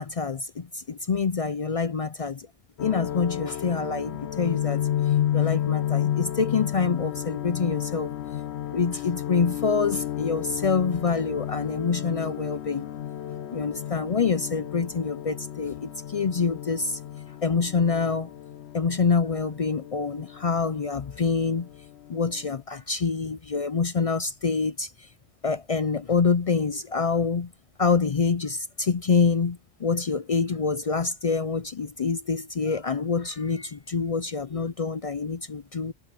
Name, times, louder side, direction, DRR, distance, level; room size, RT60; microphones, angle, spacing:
voice 1, 0.0-2.5 2.8-4.9 5.3-8.1 8.7-12.9 13.5-17.0 17.4-18.3 18.7-21.7 22.1-25.1 25.4-27.5 27.8-35.9, left 5 dB, 50° left, 0.4 m, -26 dB
sound 1, 2.8-21.3 21.6-22.6, left 11 dB, 75° left, 0.9 m, -32 dB
omnidirectional pair, 1.1 m